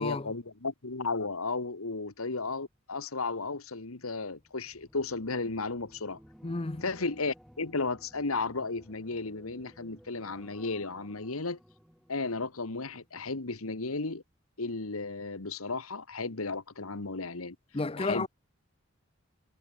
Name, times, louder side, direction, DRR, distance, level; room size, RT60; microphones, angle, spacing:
voice 1, 0.0-6.2 6.8-11.6 12.1-14.2 14.6-17.6 18.0-18.3, left 3 dB, 85° left, 1.6 m, -34 dB
sound 1, 4.3-13.6 14.0-14.3, equal, ahead, 3.1 m, -57 dB
voice 2, 6.4-6.8 17.7-18.3, left 3 dB, 25° left, 0.7 m, -32 dB
head